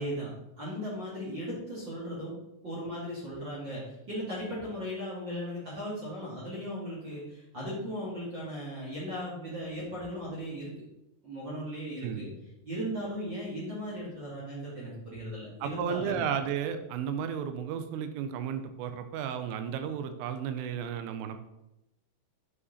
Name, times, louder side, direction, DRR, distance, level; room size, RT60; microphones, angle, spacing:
voice 1, 0.0-2.3 2.6-10.7 11.2-12.3 12.6-16.2, equal, 50° right, -8 dB, 1.4 m, -37 dB
voice 2, 15.6-21.4, right 8 dB, 85° right, 9 dB, 3.1 m, -33 dB
9.9 x 5.0 x 4.1 m, 0.89 s
omnidirectional pair, 5.8 m